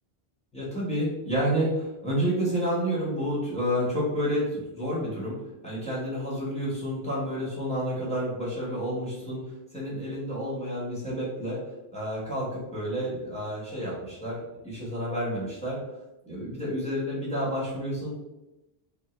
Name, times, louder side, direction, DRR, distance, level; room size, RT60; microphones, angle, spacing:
voice 1, 0.5-9.4 9.7-11.6 11.9-14.4 14.6-15.8 16.3-18.1, equal, 5° left, -8 dB, 1.0 m, -30 dB
2.9 x 2.1 x 3.1 m, 0.95 s
omnidirectional pair, 1.1 m